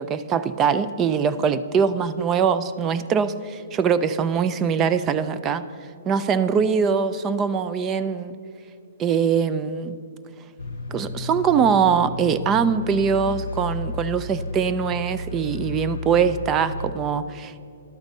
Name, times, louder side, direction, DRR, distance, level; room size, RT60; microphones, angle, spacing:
voice 1, 0.0-5.6 6.1-8.4 9.0-10.0 10.9-17.6, right 6 dB, 25° right, 12 dB, 0.3 m, -22 dB
sound 1, 10.6-16.9, left 2 dB, 85° left, 0.3 m, -33 dB
12.0 x 4.0 x 5.2 m, 2.5 s
hypercardioid pair, 135°, 0 cm